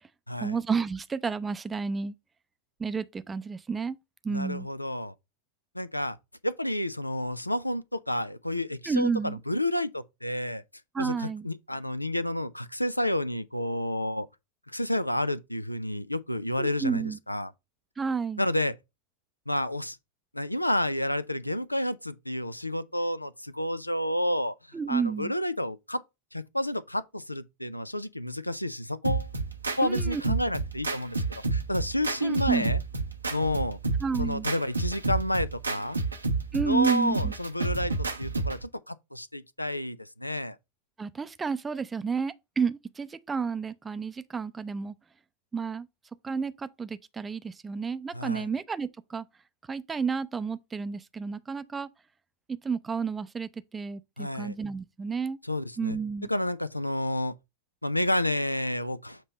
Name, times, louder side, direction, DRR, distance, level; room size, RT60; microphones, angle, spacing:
voice 1, 0.4-2.1 2.8-4.0 4.2-4.7 8.9-9.4 10.9-11.5 16.6-17.2 18.0-18.4 24.7-25.3 29.8-30.4 32.2-32.7 34.0-34.5 36.5-37.3 41.0-44.9 45.5-45.9 46.2-49.3 49.7-51.9 52.6-55.4 55.8-56.3, right 5 dB, 15° right, 0.5 m, -31 dB
voice 2, 4.3-5.1 5.7-6.2 6.4-10.6 11.0-14.3 14.7-17.5 18.4-18.7 19.5-20.0 20.3-26.0 26.3-29.3 29.8-32.8 33.3-33.8 34.2-36.0 36.6-40.6 48.1-48.5 54.2-54.5 55.4-56.0 56.3-57.3 57.8-59.2, left 1 dB, 85° left, 0.4 m, -30 dB
sound 1, 29.0-38.6, right 3 dB, 80° right, 0.8 m, -30 dB
7.6 x 2.9 x 5.2 m
figure-of-eight pair, 90°, 0 cm